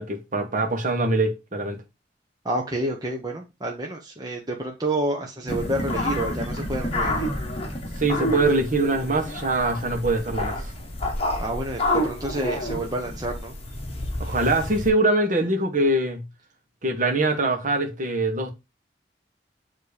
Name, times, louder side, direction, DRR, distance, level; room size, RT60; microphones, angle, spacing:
voice 1, 0.0-1.8 8.0-10.7 14.2-16.2 16.8-18.5, right 2 dB, 45° right, 1.3 m, -23 dB
voice 2, 2.4-7.3 11.4-13.5, right 1 dB, 20° right, 0.9 m, -29 dB
sound 1, 5.5-14.9, left 1 dB, 35° left, 1.8 m, -29 dB
7.1 x 3.0 x 5.0 m
head